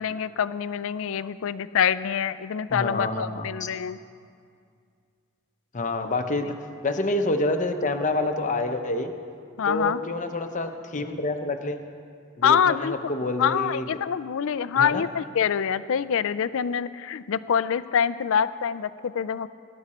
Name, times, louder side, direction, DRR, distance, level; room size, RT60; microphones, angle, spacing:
voice 1, 0.0-4.0 9.6-10.0 12.4-13.0 13.4-19.5, left 7 dB, 60° left, 15 dB, 0.4 m, -25 dB
voice 2, 2.7-3.7 5.7-6.5 6.8-9.1 9.6-11.8 12.4-14.0 14.8-15.0, left 2 dB, 35° left, 6 dB, 0.8 m, -27 dB
19.0 x 11.0 x 4.3 m, 2.3 s
head